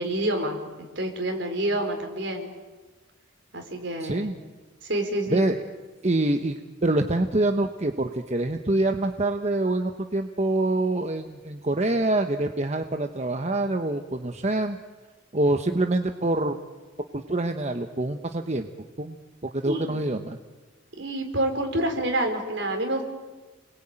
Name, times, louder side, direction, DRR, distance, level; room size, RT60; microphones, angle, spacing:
voice 1, 0.0-2.5 3.5-4.3 4.8-5.4 19.6-20.0 21.0-23.0, right 1 dB, 65° right, 3 dB, 4.6 m, -28 dB
voice 2, 4.0-4.3 5.3-5.6 6.0-14.8 15.3-16.6 17.1-18.7 19.0-20.4, right 2 dB, 35° right, 5 dB, 1.1 m, -25 dB
29.5 x 21.5 x 9.0 m, 1.3 s
head